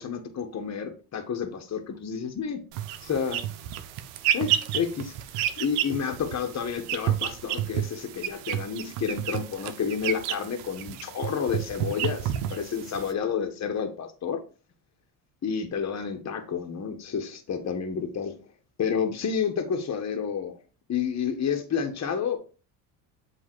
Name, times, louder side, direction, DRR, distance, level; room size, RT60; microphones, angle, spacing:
voice 1, 0.0-2.6 3.0-3.4 4.3-5.1 5.6-14.4 15.4-18.4 18.8-20.6 20.9-22.4, left 7 dB, 35° left, 6 dB, 1.3 m, -30 dB
sound 1, 2.7-13.1, right 11 dB, 85° right, 0.7 m, -31 dB
7.6 x 2.8 x 4.6 m, 0.36 s
supercardioid pair, 80°, 45 cm